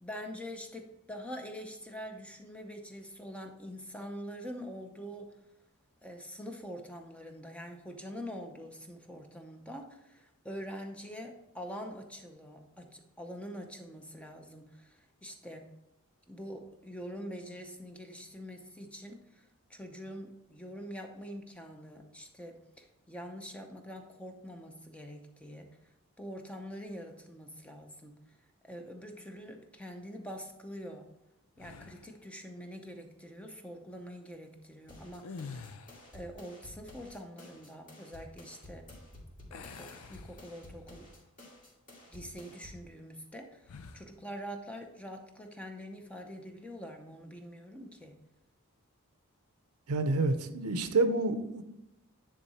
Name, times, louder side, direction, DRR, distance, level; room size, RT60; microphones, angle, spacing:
voice 1, 0.0-5.4 6.0-15.7 16.3-25.7 26.2-28.2 28.6-31.1 31.6-35.7 36.1-38.9 39.5-41.1 42.1-48.2, equal, 5° left, 4 dB, 0.7 m, -45 dB
sound 1, 31.6-32.2 35.1-36.2 39.5-40.9 41.4-41.6 43.6-44.1, left 5 dB, 85° left, 0.5 m, -47 dB
sound 2, 34.9-42.9, left 1 dB, 40° left, 2.4 m, -52 dB
voice 2, 49.9-51.6, right 3 dB, 80° right, 8 dB, 0.7 m, -28 dB
10.0 x 3.7 x 4.3 m, 0.90 s
head